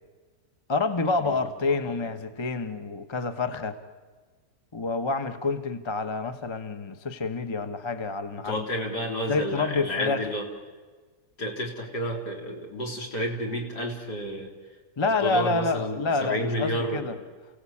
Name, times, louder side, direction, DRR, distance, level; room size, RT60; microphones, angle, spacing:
voice 1, 0.7-3.8 4.7-8.7 9.3-10.3 15.0-17.2, left 3 dB, 20° left, 9 dB, 0.9 m, -28 dB
voice 2, 1.7-2.0 8.4-10.4 11.4-14.5 15.0-17.2, equal, 65° left, 1 dB, 4.0 m, -31 dB
28.5 x 17.0 x 8.6 m, 1.4 s
omnidirectional pair, 1.9 m